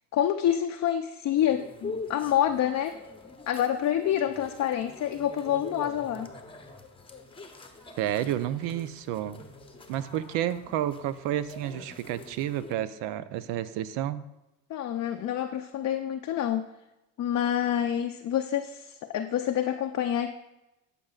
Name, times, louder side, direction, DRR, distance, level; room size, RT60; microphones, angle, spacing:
voice 1, 0.1-3.0 3.5-6.3 14.7-16.7 17.2-20.3, left 10 dB, 40° left, 5 dB, 0.5 m, -27 dB
sound 1, 1.4-12.8, left 3 dB, 10° left, 0.8 m, -45 dB
voice 2, 8.0-9.4 9.9-14.2, right 11 dB, 70° right, 14 dB, 0.6 m, -30 dB
11.5 x 5.3 x 2.4 m, 0.93 s
supercardioid pair, 80°, 43 cm